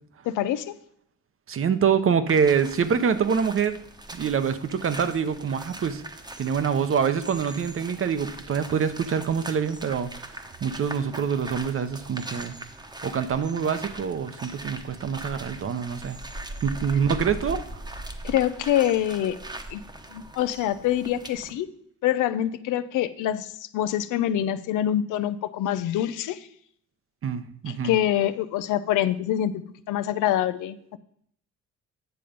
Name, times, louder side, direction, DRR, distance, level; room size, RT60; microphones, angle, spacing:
voice 1, 0.3-0.6 18.2-19.4 19.7-19.8 20.1-21.7 22.0-26.5 27.7-29.6 29.9-31.0, left 11 dB, 85° left, 13 dB, 0.6 m, -25 dB
voice 2, 1.5-3.8 4.1-6.0 6.4-12.5 13.0-16.2 16.6-17.6 27.2-28.0, right 7 dB, 45° right, 11 dB, 0.9 m, -25 dB
sound 1, 2.3-21.5, right 1 dB, 15° right, 1.0 m, -40 dB
9.1 x 6.9 x 5.2 m, 0.68 s
cardioid pair, 90°, 30 cm